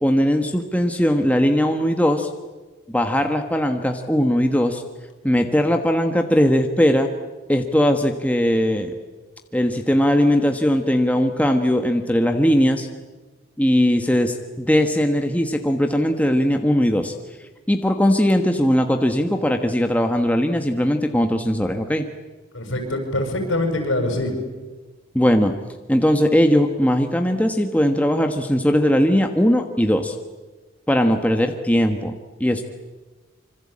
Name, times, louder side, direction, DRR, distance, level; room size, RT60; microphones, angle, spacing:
voice 1, 0.0-2.3 2.9-4.8 5.2-7.1 7.5-8.9 9.5-12.9 13.6-17.1 17.7-22.1 25.1-25.5 25.9-30.1 30.9-32.6, equal, 5° left, 5 dB, 1.3 m, -19 dB
voice 2, 22.5-24.3, left 1 dB, 70° left, 5 dB, 7.2 m, -24 dB
26.5 x 25.0 x 8.7 m, 1.3 s
head